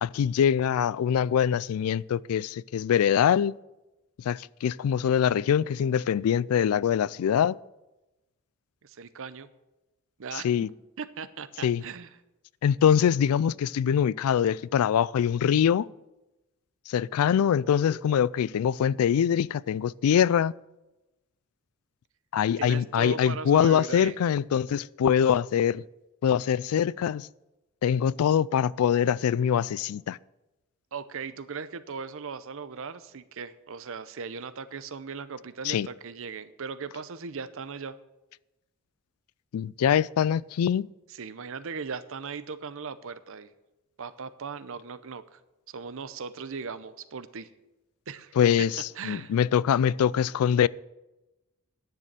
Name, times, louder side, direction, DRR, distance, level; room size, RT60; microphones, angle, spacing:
voice 1, 0.0-3.5 4.2-7.6 10.3-10.7 11.6-11.8 12.6-15.9 16.9-20.5 22.3-25.8 26.2-27.3 27.8-30.2 35.6-35.9 39.5-40.9 48.4-50.7, left 8 dB, 90° left, 0.3 m, -24 dB
voice 2, 8.8-9.5 10.2-10.5 11.0-12.1 22.6-24.2 30.9-38.0 41.1-43.5 44.0-45.4 45.7-47.5 48.1-48.4 49.0-49.3, right 5 dB, 65° right, 0.7 m, -38 dB
10.5 x 6.7 x 7.4 m
head